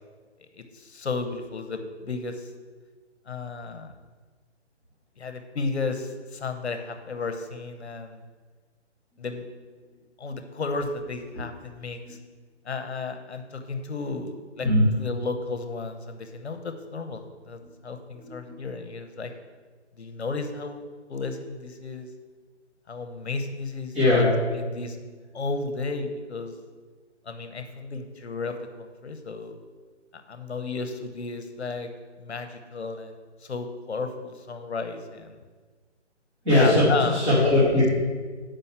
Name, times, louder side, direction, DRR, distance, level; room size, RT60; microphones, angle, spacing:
voice 1, 0.5-2.5 3.3-3.9 5.2-8.2 9.2-9.5 10.2-12.2 12.6-14.7 15.0-19.3 20.0-20.8 21.1-22.1 22.9-24.2 24.5-25.0 25.3-26.5 27.2-29.5 30.1-31.9 32.2-33.2 33.4-35.4 36.5-37.2, left 3 dB, 65° left, 7 dB, 1.1 m, -33 dB
voice 2, 18.2-18.6 23.9-24.2 36.4-37.9, left 1 dB, 15° right, -13 dB, 2.5 m, -20 dB
7.0 x 5.3 x 7.3 m, 1.4 s
hypercardioid pair, 175°, 35 cm